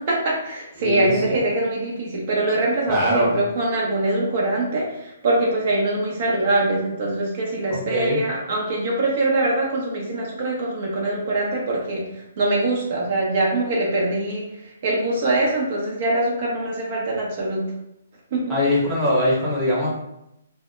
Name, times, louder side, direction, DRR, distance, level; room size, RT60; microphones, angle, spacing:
voice 1, 0.0-17.6 18.3-18.6, right 2 dB, 50° right, -3 dB, 0.6 m, -23 dB
voice 2, 0.8-1.4 2.9-3.3 7.7-8.2 18.5-19.9, left 1 dB, 10° right, -7 dB, 0.8 m, -22 dB
2.1 x 2.0 x 3.0 m, 0.81 s
figure-of-eight pair, 135°, 0 cm